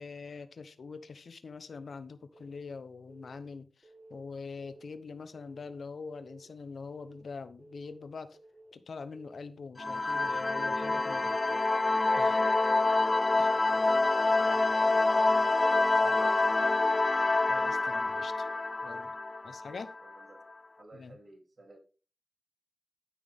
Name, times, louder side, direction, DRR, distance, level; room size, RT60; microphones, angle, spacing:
voice 1, 0.0-8.4 8.7-11.3 12.2-12.4 13.4-13.5 17.5-18.5 18.8-19.1 19.4-19.9 20.9-21.2, left 4 dB, 80° left, 0.9 m, -44 dB
Keyboard (musical) / Alarm, 2.3-2.7 3.1-3.5 3.8-4.2 4.6-5.0 5.3-5.7 6.1-6.5 6.8-7.2 7.6-8.0 8.3-8.7 9.1-9.5 9.8-10.2 10.6-11.0 11.3-11.7 12.1-12.5 12.8-13.2 13.6-14.0 14.3-14.7 15.1-15.5 15.9-16.2 16.6-17.0 17.4-17.7 18.1-18.5, right 2 dB, 25° right, 5.0 m, -55 dB
sound 1, 9.8-20.2, left 2 dB, 40° left, 0.5 m, -27 dB
voice 2, 10.9-11.6 12.1-12.7 13.0-16.7 19.7-20.4 20.8-21.8, right 2 dB, 55° right, 3.2 m, -53 dB
12.5 x 6.2 x 3.5 m
cardioid pair, 50°, 0 cm